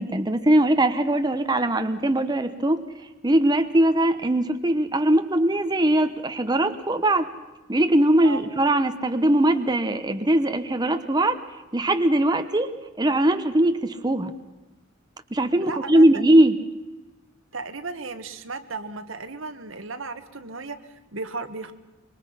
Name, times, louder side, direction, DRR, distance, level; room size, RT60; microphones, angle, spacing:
voice 1, 0.0-2.8 3.2-7.3 7.7-11.4 11.7-12.7 13.0-14.3 15.3-16.6, right 1 dB, 20° right, 8 dB, 1.0 m, -21 dB
voice 2, 15.6-16.1 17.5-21.7, right 3 dB, 80° right, 8 dB, 1.7 m, -35 dB
25.5 x 22.5 x 5.8 m, 1.1 s
head